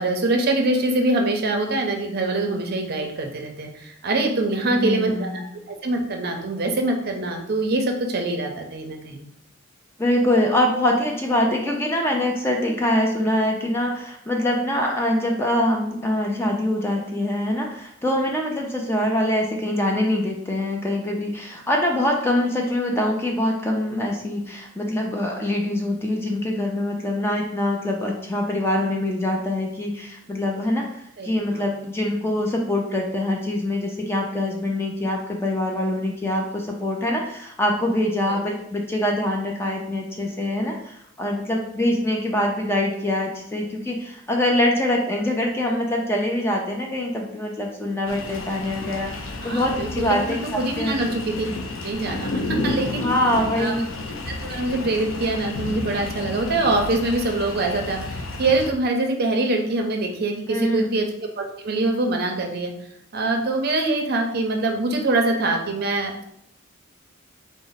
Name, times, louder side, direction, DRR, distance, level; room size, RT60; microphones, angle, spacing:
voice 1, 0.0-5.4 5.7-9.2 31.2-31.6 38.3-38.4 49.4-51.5 51.8-53.1 53.5-53.7 54.3-61.1 61.4-62.7 63.1-66.2, right 2 dB, 50° right, 3 dB, 0.6 m, -24 dB
voice 2, 4.6-5.5 10.0-50.4 50.8-51.0 53.0-53.9 60.5-61.0, left 1 dB, 10° left, 0 dB, 0.4 m, -24 dB
sound 1, 48.1-58.7, left 2 dB, 65° left, 0.5 m, -31 dB
4.0 x 2.0 x 3.9 m, 0.73 s
head